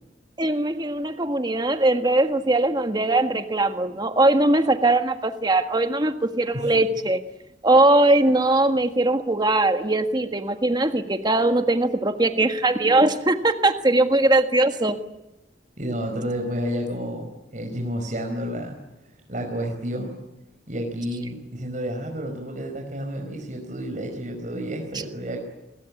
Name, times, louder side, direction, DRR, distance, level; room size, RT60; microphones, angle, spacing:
voice 1, 0.4-7.2 7.6-15.0, right 2 dB, 25° right, 7 dB, 1.6 m, -20 dB
voice 2, 15.8-20.2 20.7-25.4, equal, 45° right, 2 dB, 4.8 m, -30 dB
28.5 x 22.5 x 8.5 m, 0.98 s
head